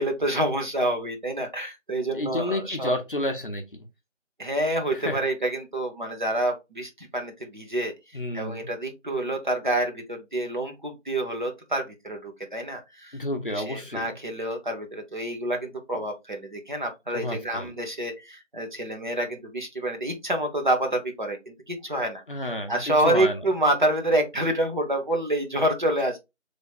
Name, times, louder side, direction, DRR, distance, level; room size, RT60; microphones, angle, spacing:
voice 1, 0.0-2.9 4.4-13.2 13.5-22.2 22.7-26.2, right 1 dB, 40° right, 0.8 m, -27 dB
voice 2, 2.1-3.9 4.9-5.2 8.1-8.7 13.1-14.1 17.1-17.7 22.3-23.4, left 1 dB, 45° left, 0.6 m, -30 dB
3.3 x 2.0 x 3.9 m
figure-of-eight pair, 165°, 37 cm